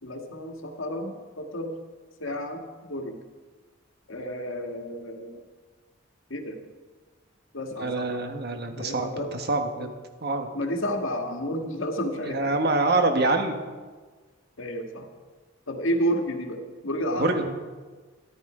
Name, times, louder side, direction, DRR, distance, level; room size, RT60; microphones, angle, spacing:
voice 1, 0.0-1.7 2.2-3.2 4.1-5.4 6.3-6.6 7.5-8.2 8.8-9.4 10.5-12.5 14.6-15.1 15.7-17.5, equal, 85° left, 4 dB, 1.7 m, -31 dB
voice 2, 7.8-9.9 10.2-10.5 12.2-13.6 17.2-17.5, right 2 dB, 55° right, 5 dB, 1.4 m, -25 dB
13.5 x 11.5 x 5.0 m, 1.4 s
head